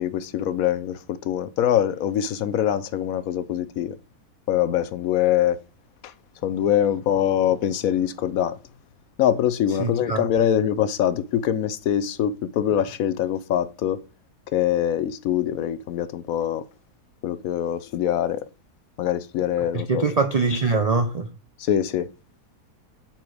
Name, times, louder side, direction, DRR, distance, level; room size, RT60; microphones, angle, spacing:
voice 1, 0.0-4.0 4.5-5.6 6.0-6.1 6.4-8.6 9.2-14.0 14.5-16.6 17.2-18.4 19.0-20.0 21.6-22.1, left 10 dB, 70° left, 0.9 m, -23 dB
voice 2, 9.8-10.2 19.7-21.3, right 3 dB, 80° right, 0.3 m, -23 dB
9.4 x 4.5 x 4.8 m
omnidirectional pair, 1.7 m